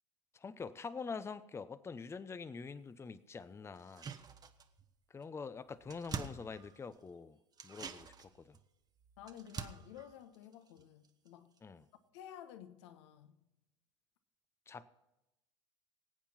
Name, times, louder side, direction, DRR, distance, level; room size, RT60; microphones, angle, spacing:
voice 1, 0.3-4.1 5.1-7.4 7.6-8.6 11.6-11.8 14.7-14.9, left 5 dB, 15° left, 0.7 m, -45 dB
sound 1, 3.8-4.9 5.2-5.3 5.6-7.1 7.5-11.3 11.6-11.7, right 6 dB, 25° right, 1.2 m, -47 dB
voice 2, 9.2-11.5 12.1-13.4, left 10 dB, 65° left, 1.2 m, -53 dB
24.5 x 8.6 x 4.3 m
hypercardioid pair, 85°, 15 cm